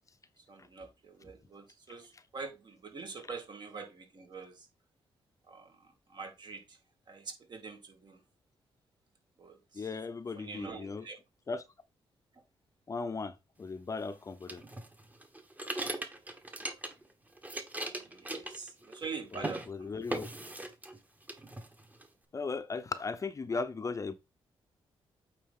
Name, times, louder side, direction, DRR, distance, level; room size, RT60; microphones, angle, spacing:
voice 1, 0.4-4.7 5.5-6.8 7.1-8.2 9.4-9.9 10.4-11.2 17.8-20.2 23.8-23.9, right 4 dB, 50° right, 2.4 m, -45 dB
voice 2, 9.7-11.0 11.5-11.6 12.9-14.6 19.7-20.3 22.3-24.1, left 4 dB, 35° left, 0.7 m, -37 dB
sound 1, 14.5-17.1 17.4-19.1 19.3-19.7 20.1-21.0 21.3-22.1, right 1 dB, 15° right, 1.4 m, -39 dB
8.6 x 4.0 x 3.8 m
cardioid pair, 90°, 10 cm